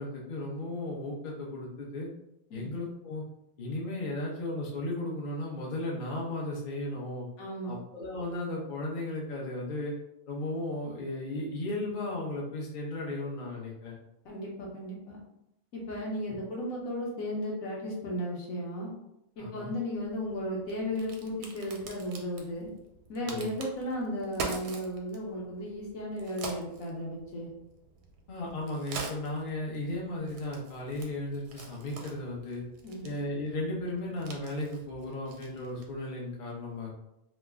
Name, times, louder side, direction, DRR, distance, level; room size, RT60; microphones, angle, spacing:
voice 1, 0.0-2.1 2.5-3.2 3.6-7.3 7.7-9.9 10.3-14.0 16.3-16.4 19.4-19.7 23.3-23.5 28.3-32.6 33.0-36.9, left 1 dB, 45° left, -3 dB, 0.6 m, -35 dB
voice 2, 7.4-7.8 14.2-15.2 15.7-18.9 19.4-22.7 23.1-27.5 32.8-33.0, equal, 65° left, -3 dB, 1.1 m, -35 dB
Crack, 19.9-36.0, right 4 dB, 90° right, 1.2 m, -45 dB
3.1 x 2.1 x 3.4 m, 0.85 s
omnidirectional pair, 1.7 m